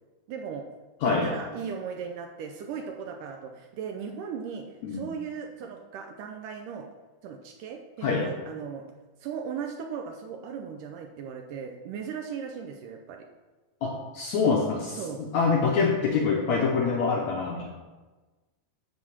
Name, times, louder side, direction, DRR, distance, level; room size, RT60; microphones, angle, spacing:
voice 1, 0.3-0.7 1.2-6.9 7.2-8.9 9.2-13.3 14.9-15.3, right 6 dB, 75° right, 4 dB, 2.0 m, -37 dB
voice 2, 1.0-1.3 4.8-5.1 8.0-8.3 13.8-17.7, left 5 dB, 70° left, 0 dB, 1.8 m, -25 dB
11.5 x 4.2 x 7.3 m, 1.2 s
omnidirectional pair, 4.3 m